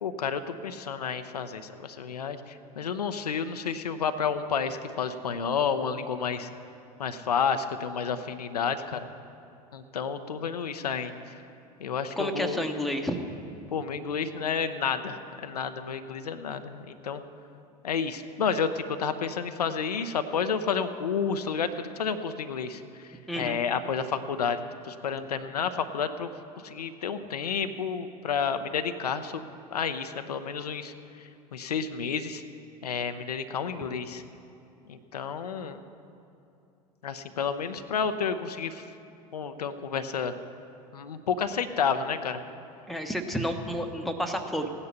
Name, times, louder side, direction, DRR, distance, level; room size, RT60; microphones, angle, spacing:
voice 1, 0.0-6.5 7.0-9.1 9.7-11.1 11.8-12.6 13.7-17.2 17.8-26.3 26.6-29.5 29.7-30.9 31.2-32.4 32.8-34.2 34.9-35.8 37.0-38.8 39.3-40.3 40.9-42.4, left 6 dB, 75° left, 9 dB, 0.6 m, -30 dB
voice 2, 12.2-13.2 23.3-23.6 42.9-44.7, equal, ahead, 3 dB, 1.1 m, -30 dB
16.0 x 9.8 x 5.7 m, 2.6 s
figure-of-eight pair, 75°, 20 cm